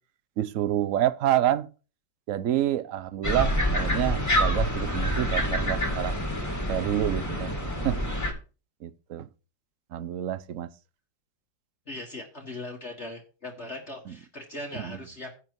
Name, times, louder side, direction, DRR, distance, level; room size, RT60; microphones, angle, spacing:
voice 1, 0.4-1.7 2.3-6.2 6.7-7.6 7.8-8.0 8.8-9.3 9.9-10.7 14.1-14.2 14.7-15.0, right 12 dB, 60° right, 0.9 m, -28 dB
sound 1, 3.2-8.3, equal, 10° left, 2.1 m, -27 dB
voice 2, 11.9-15.3, left 2 dB, 40° left, 1.8 m, -39 dB
9.8 x 7.8 x 4.7 m
omnidirectional pair, 2.0 m